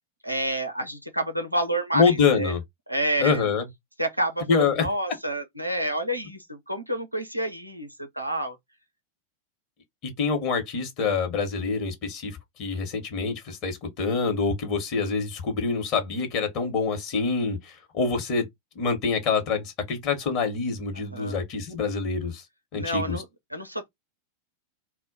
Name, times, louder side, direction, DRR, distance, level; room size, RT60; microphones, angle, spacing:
voice 1, 0.2-2.5 2.9-3.5 4.0-8.6 21.1-21.4 22.7-23.9, right 1 dB, 90° right, 0.5 m, -29 dB
voice 2, 1.9-2.6 3.2-3.7 4.5-4.9 10.0-18.5 18.7-22.4 22.7-23.2, left 5 dB, 40° left, 0.9 m, -26 dB
2.1 x 2.1 x 3.8 m
figure-of-eight pair, 90°, 0 cm